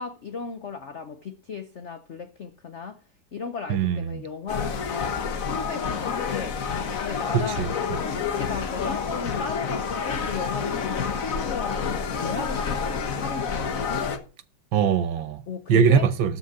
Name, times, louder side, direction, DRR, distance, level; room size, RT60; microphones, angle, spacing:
voice 1, 0.0-3.0 3.3-6.6 7.0-7.7 8.0-14.1 15.5-16.1, left 6 dB, 65° left, 0.7 m, -36 dB
voice 2, 3.7-4.3 7.3-7.7 14.7-15.4 15.7-16.4, right 7 dB, 70° right, 1.5 m, -22 dB
gym ambience, 4.5-14.2, left 6 dB, 45° left, 1.4 m, -28 dB
12.5 x 6.2 x 6.7 m
omnidirectional pair, 2.3 m